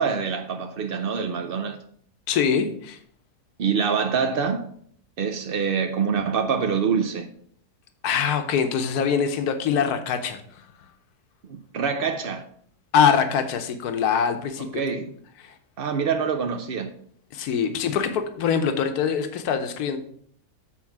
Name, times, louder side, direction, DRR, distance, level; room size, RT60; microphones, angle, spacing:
voice 1, 0.0-1.8 3.6-4.7 5.2-7.3 11.5-12.4 14.7-15.1 15.8-16.9, right 6 dB, 80° right, 0.5 m, -25 dB
voice 2, 2.3-3.0 8.0-10.4 12.9-14.8 15.4-15.5 17.3-20.0, left 7 dB, 75° left, 1.3 m, -23 dB
7.2 x 4.2 x 5.8 m
omnidirectional pair, 1.7 m